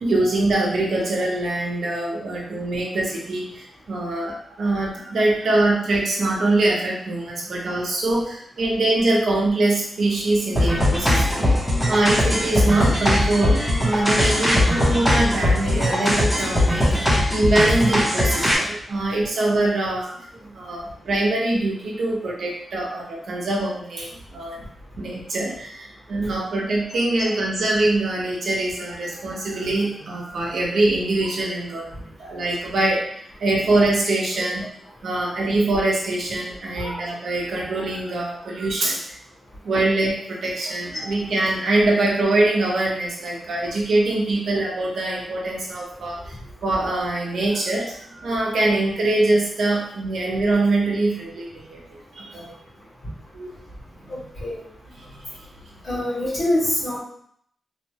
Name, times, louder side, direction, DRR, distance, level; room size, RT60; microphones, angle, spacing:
voice 1, 0.0-11.6 11.9-24.7 25.0-34.6 35.0-39.2 39.6-46.4 46.6-52.5 53.3-53.5 54.0-54.2 54.9-55.5, right 2 dB, 65° right, -2 dB, 0.7 m, -23 dB
sound 1, 10.6-18.6, left 1 dB, 10° left, 0.7 m, -20 dB
voice 2, 54.1-54.6 55.8-57.0, left 1 dB, 50° left, -9 dB, 1.3 m, -25 dB
3.1 x 2.1 x 2.8 m, 0.66 s
wide cardioid pair, 180°, 0 cm